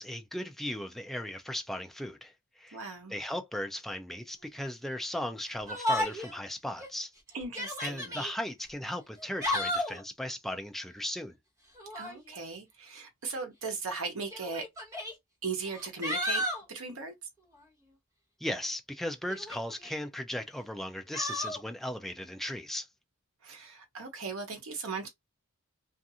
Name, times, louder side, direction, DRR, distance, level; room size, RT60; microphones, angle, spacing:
voice 1, 0.0-2.8 3.1-7.1 7.8-11.4 18.4-22.9, left 1 dB, ahead, 0.4 m, -37 dB
voice 2, 2.7-3.1 7.3-8.2 11.9-14.6 15.4-16.4 16.7-17.1 23.4-25.1, right 4 dB, 65° right, 0.9 m, -38 dB
Yell, 5.7-6.4 6.8-6.9 7.4-8.3 9.2-10.0 11.7-12.2 13.3-13.4 14.3-15.1 15.7-16.6 19.3-20.0 21.1-21.6, left 1 dB, 15° right, 1.3 m, -33 dB
2.5 x 2.4 x 2.7 m
head